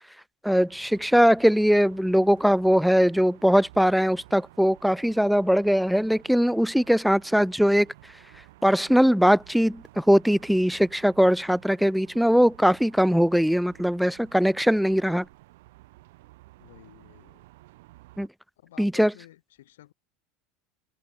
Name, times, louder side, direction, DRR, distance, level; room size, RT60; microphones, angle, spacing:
voice 1, 0.4-7.9 8.6-15.3 18.2-18.3 18.8-19.1, equal, ahead, 0.3 m, -21 dB
sound 1, 0.7-18.3, right 19 dB, 80° right, 3.1 m, -53 dB
voice 2, 16.6-17.4 18.6-19.9, left 14 dB, 90° left, 4.7 m, -52 dB
supercardioid pair, 110°, 0 cm